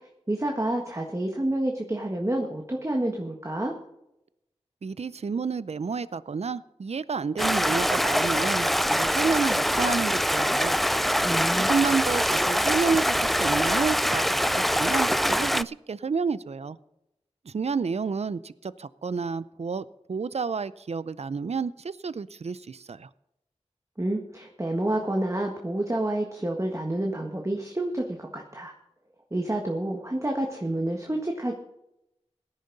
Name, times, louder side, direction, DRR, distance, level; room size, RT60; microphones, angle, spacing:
voice 1, 0.3-3.7 11.2-11.7 24.0-28.7 29.3-31.5, right 1 dB, 25° right, 1 dB, 1.6 m, -29 dB
voice 2, 4.8-10.8 11.7-14.2 14.6-16.8 17.5-23.1, right 5 dB, 65° right, 17 dB, 0.5 m, -30 dB
Stream, 7.4-15.6, equal, ahead, 0.3 m, -24 dB
17.0 x 10.5 x 4.0 m, 0.86 s
cardioid pair, 40°, 12 cm